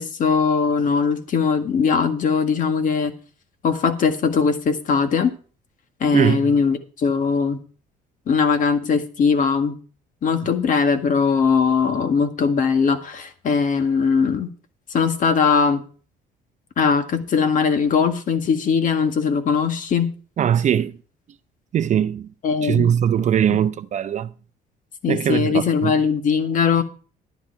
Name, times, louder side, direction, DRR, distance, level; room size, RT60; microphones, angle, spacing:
voice 1, 0.0-3.1 3.6-5.3 6.0-7.6 8.3-9.8 10.2-14.5 14.9-15.8 16.8-20.1 22.4-22.9 25.0-26.8, left 5 dB, 50° left, 1.8 m, -20 dB
voice 2, 6.1-6.5 20.4-21.0 21.7-22.3 22.6-24.3 25.1-25.9, right 9 dB, 45° right, 0.6 m, -20 dB
11.0 x 10.5 x 4.7 m
cardioid pair, 110°, 17 cm